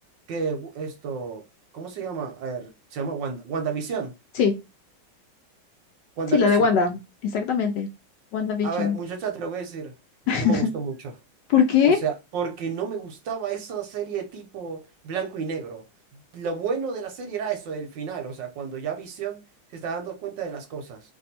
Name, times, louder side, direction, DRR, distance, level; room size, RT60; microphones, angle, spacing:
voice 1, 0.3-1.4 1.7-4.1 6.2-6.7 8.6-9.9 10.4-10.9 11.8-15.8 16.3-19.4 19.7-21.0, right 6 dB, 65° right, 1.5 m, -31 dB
voice 2, 6.3-7.9 8.3-9.0 10.3-10.7 11.5-12.0, left 6 dB, 75° left, 1.1 m, -21 dB
3.3 x 2.6 x 4.2 m
omnidirectional pair, 2.2 m